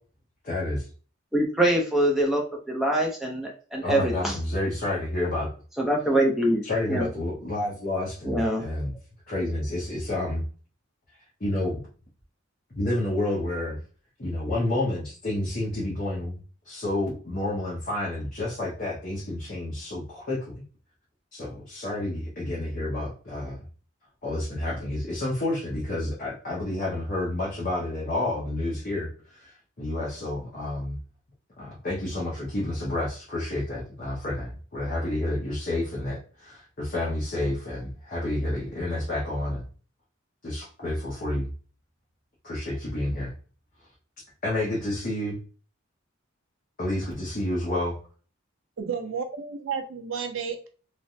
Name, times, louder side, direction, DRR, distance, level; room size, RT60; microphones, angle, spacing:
voice 1, 0.4-0.9 3.8-5.5 6.6-8.9 9.3-10.4 11.4-11.8 12.8-13.8 14.2-16.4 16.6-20.6 21.3-23.6 24.2-29.5 29.8-31.0 31.6-39.7 40.4-41.5 42.4-43.3 44.4-45.4 46.8-48.0, left 1 dB, 45° left, -6 dB, 0.9 m, -29 dB
voice 2, 1.3-4.4 5.8-6.6 6.9-7.1 8.2-8.7, right 1 dB, ahead, -1 dB, 0.7 m, -24 dB
voice 3, 48.8-50.7, right 6 dB, 80° right, 5 dB, 0.6 m, -32 dB
3.3 x 2.2 x 2.6 m, 0.39 s
head